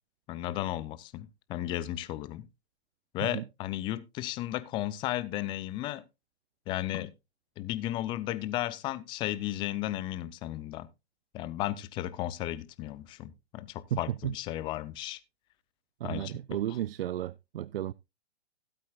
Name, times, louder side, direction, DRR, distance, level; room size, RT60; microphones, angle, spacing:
voice 1, 0.3-2.5 3.1-6.0 6.7-7.1 7.6-10.9 11.3-15.2 16.0-16.8, left 14 dB, 15° left, 0.4 m, -34 dB
voice 2, 13.9-14.3 16.0-17.9, right 12 dB, 60° right, 0.5 m, -33 dB
16.0 x 8.4 x 2.3 m
hypercardioid pair, 125°, 32 cm